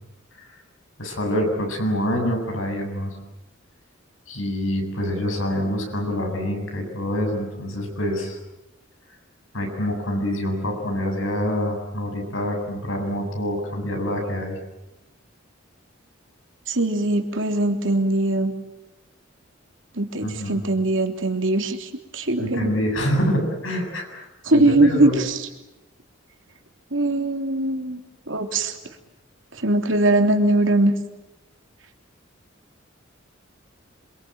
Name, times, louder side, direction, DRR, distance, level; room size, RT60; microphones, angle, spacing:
voice 1, 1.0-3.2 4.3-8.4 9.5-14.6 20.2-20.6 22.4-25.2, equal, 85° left, 3 dB, 7.7 m, -26 dB
voice 2, 16.7-18.5 20.0-22.7 24.4-25.5 26.9-28.0 28.3-28.7 29.6-30.9, right 2 dB, 75° right, 4 dB, 3.3 m, -21 dB
26.5 x 25.0 x 8.9 m, 0.94 s
head